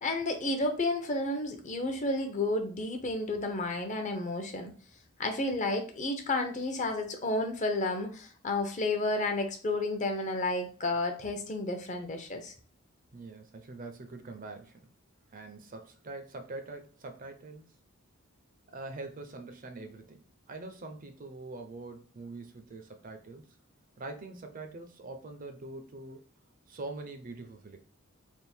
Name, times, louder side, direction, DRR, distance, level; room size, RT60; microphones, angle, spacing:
voice 1, 0.0-4.7 5.2-12.5, left 2 dB, 35° left, 0.7 m, -31 dB
voice 2, 13.1-14.9 15.3-17.7 18.7-23.4 24.0-26.2 26.7-27.8, right 2 dB, 40° right, 0.5 m, -44 dB
3.5 x 2.5 x 4.3 m
head